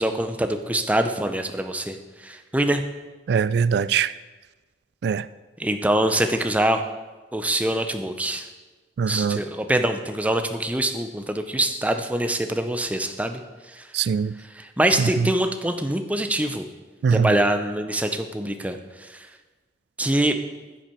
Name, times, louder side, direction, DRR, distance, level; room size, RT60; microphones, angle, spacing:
voice 1, 0.0-2.8 5.6-6.8 7.3-8.5 9.1-13.4 13.7-13.9 14.5-16.7 17.1-19.3 20.0-20.4, right 1 dB, 10° right, 7 dB, 0.5 m, -24 dB
voice 2, 3.3-4.1 5.0-5.3 9.0-9.4 13.9-14.3 15.0-15.3 17.0-17.3, right 6 dB, 60° right, 16 dB, 0.3 m, -22 dB
9.9 x 7.5 x 4.5 m, 1.3 s
head